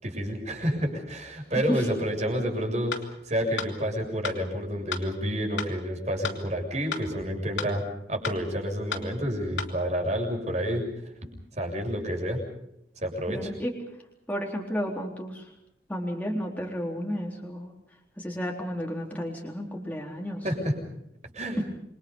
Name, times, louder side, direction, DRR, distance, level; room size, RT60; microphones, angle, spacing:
voice 1, 0.0-3.0 3.3-10.9 11.6-12.4 13.0-13.5 20.4-20.7 21.3-21.6, equal, 40° right, 3 dB, 7.0 m, -29 dB
sound 1, 2.9-3.0 3.6-3.7 4.2-4.4 4.9-5.0 5.6-5.7 6.2-6.4 6.9-7.0 7.6-7.7 8.2-8.4 8.9-9.0 9.6-9.7, left 6 dB, 90° left, 2.8 m, -32 dB
voice 2, 13.3-13.7 14.3-15.5 15.9-17.7 18.2-20.4 21.6-21.7, equal, 10° left, -1 dB, 3.9 m, -32 dB
27.5 x 24.5 x 5.5 m, 0.82 s
head